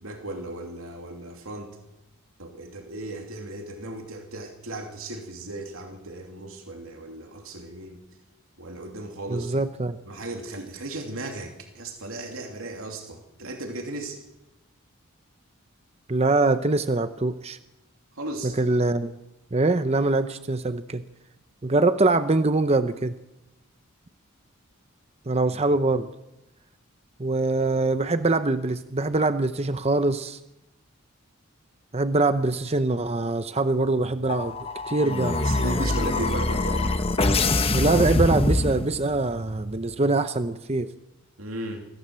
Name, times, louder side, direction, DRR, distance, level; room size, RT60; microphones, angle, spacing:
voice 1, 0.0-1.8 2.4-8.0 8.6-9.5 10.1-14.2 18.1-18.6 25.5-25.6 35.4-36.9 41.4-41.9, right 2 dB, 80° right, 3 dB, 2.9 m, -36 dB
voice 2, 9.3-10.0 16.1-17.6 18.4-19.1 19.5-21.0 21.6-23.1 25.3-26.1 27.2-30.4 31.9-34.6 34.9-35.4 37.7-40.9, right 2 dB, 30° right, 11 dB, 0.7 m, -23 dB
sound 1, 34.3-39.3, left 2 dB, 25° left, 1.1 m, -24 dB
23.5 x 16.0 x 7.5 m, 0.94 s
head